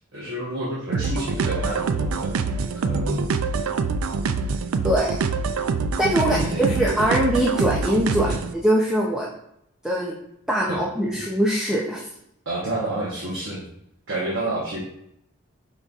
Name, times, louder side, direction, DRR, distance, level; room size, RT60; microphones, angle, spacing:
voice 1, 0.1-2.4 2.7-3.3 6.2-7.1 8.2-8.3 10.7-10.8 12.5-13.7 14.1-14.8, right 1 dB, 60° right, -5 dB, 1.0 m, -29 dB
sound 1, 0.9-8.5, right 4 dB, 80° right, 0.3 m, -25 dB
voice 2, 4.8-5.2 6.0-8.3 8.5-9.3 9.8-10.1 10.5-12.1, right 1 dB, 5° right, -4 dB, 0.5 m, -22 dB
5.2 x 3.9 x 2.4 m, 0.77 s
head